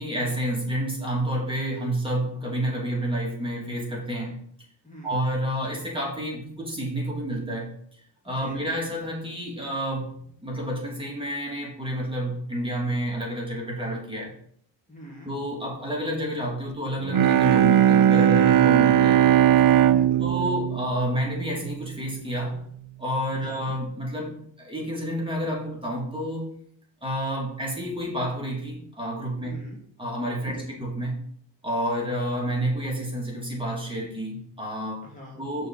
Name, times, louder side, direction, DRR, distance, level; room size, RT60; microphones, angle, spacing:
voice 1, 0.0-4.4 5.0-7.7 8.2-10.1 10.4-14.3 15.2-19.2 20.2-22.6 23.0-26.5 27.0-29.6 30.0-31.2 31.6-35.0 35.4-35.7, equal, 10° right, -3 dB, 3.0 m, -29 dB
voice 2, 4.8-5.2 8.3-8.6 14.9-15.3 19.9-20.2 23.3-23.7 29.4-29.8 30.5-30.8 35.0-35.5, equal, 15° left, -4 dB, 2.3 m, -45 dB
Bowed string instrument, 17.0-21.9, right 10 dB, 50° right, 0.6 m, -19 dB
6.6 x 4.7 x 4.8 m, 0.63 s
cardioid pair, 65°, 46 cm